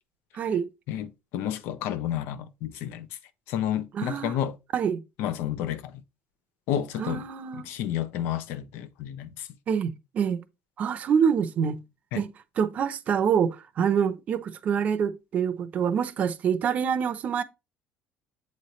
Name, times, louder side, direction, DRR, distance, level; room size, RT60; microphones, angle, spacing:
voice 1, 0.3-0.7 3.9-4.4 4.7-5.0 7.0-7.7 9.7-10.4 10.8-11.8 12.2-17.4, right 7 dB, 40° right, 0.7 m, -26 dB
voice 2, 0.9-3.1 3.5-4.6 5.2-5.9 6.7-7.2 7.7-9.5 12.1-12.2, left 10 dB, 75° left, 0.7 m, -30 dB
8.0 x 3.2 x 4.1 m
cardioid pair, 145°, 4 cm